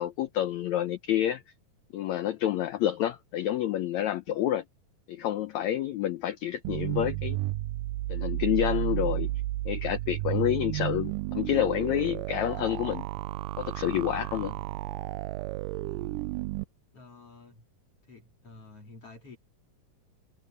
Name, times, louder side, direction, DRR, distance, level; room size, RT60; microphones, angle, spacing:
voice 1, 0.0-1.4 1.9-4.6 5.1-7.4 8.1-9.3 9.6-13.1 13.6-14.5, left 12 dB, 85° left, 1.6 m, -28 dB
sound 1, 6.6-16.6, right 18 dB, 85° right, 1.9 m, -32 dB
voice 2, 14.3-14.8 15.8-16.2 16.9-17.7 18.1-19.4, left 3 dB, 40° left, 4.3 m, -51 dB
omnidirectional pair, 4.2 m